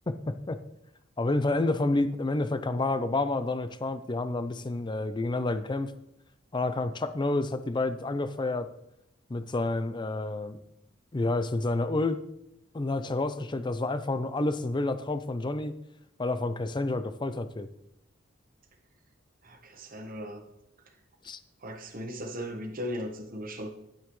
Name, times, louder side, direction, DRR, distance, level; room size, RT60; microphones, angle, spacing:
voice 1, 0.1-0.6 1.2-5.9 6.5-8.7 9.3-10.6 11.1-12.2 12.7-15.8 16.2-17.7 21.2-21.4, left 2 dB, 25° left, 12 dB, 0.5 m, -29 dB
voice 2, 19.4-20.4 21.6-23.7, equal, 45° right, 3 dB, 1.2 m, -37 dB
10.5 x 8.8 x 3.1 m, 0.81 s
head